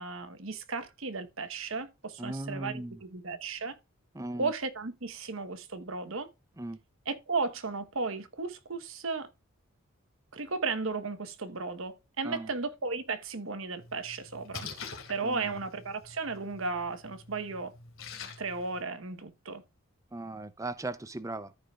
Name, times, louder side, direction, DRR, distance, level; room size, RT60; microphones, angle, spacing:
voice 1, 0.0-3.7 4.4-6.3 7.0-9.3 10.3-14.7 15.1-17.7 18.4-19.6, right 4 dB, 65° right, 1.2 m, -35 dB
voice 2, 2.2-3.0 4.1-4.5 6.6-6.8 12.2-12.5 15.2-15.5 20.1-21.6, right 2 dB, 15° right, 0.5 m, -38 dB
Splash splatter, 13.8-18.8, left 5 dB, 65° left, 2.7 m, -46 dB
14.0 x 4.9 x 2.4 m
head